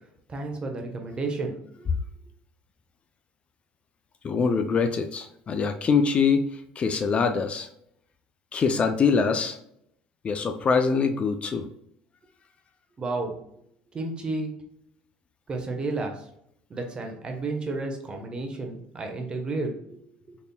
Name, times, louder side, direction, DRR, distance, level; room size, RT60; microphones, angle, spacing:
voice 1, 0.3-1.9 13.0-13.4 13.9-14.5 15.5-16.3 16.7-20.4, right 3 dB, 30° right, 3 dB, 1.1 m, -32 dB
voice 2, 4.2-7.7 8.5-9.6 10.2-11.7, left 5 dB, 35° left, 7 dB, 0.4 m, -24 dB
4.2 x 3.3 x 2.3 m, 0.73 s
supercardioid pair, 95°, 3 cm